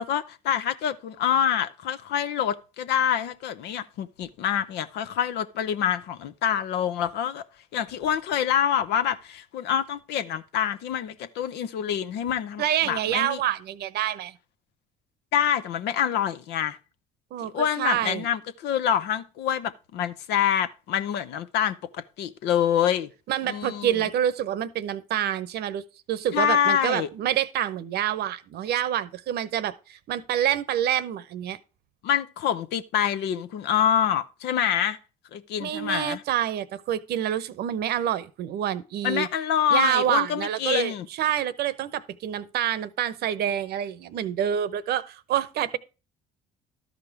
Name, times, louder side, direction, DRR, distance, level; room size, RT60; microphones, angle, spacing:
voice 1, 0.0-7.4 7.7-13.4 15.3-16.8 17.4-23.1 23.5-23.9 26.3-27.1 32.0-35.0 35.3-36.2 39.0-41.1, left 9 dB, 65° left, 0.9 m, -26 dB
voice 2, 12.6-14.3 17.3-18.2 23.3-25.8 26.1-31.6 35.6-39.3 39.7-45.8, right 11 dB, 60° right, 0.9 m, -27 dB
12.5 x 5.2 x 4.8 m
hypercardioid pair, 65°, 18 cm